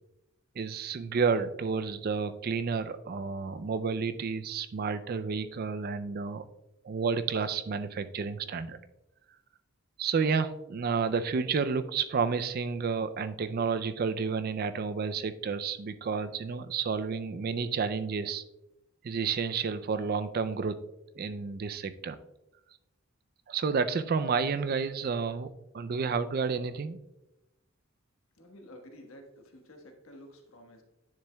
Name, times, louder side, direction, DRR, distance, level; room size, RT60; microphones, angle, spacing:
voice 1, 0.6-6.4 6.8-8.8 10.0-18.4 19.0-20.8 21.2-22.2 23.5-25.5 25.7-27.0, right 5 dB, 45° right, 12 dB, 0.4 m, -30 dB
voice 2, 28.3-30.8, left 1 dB, 80° left, 3 dB, 1.3 m, -51 dB
9.8 x 6.8 x 2.2 m, 0.94 s
head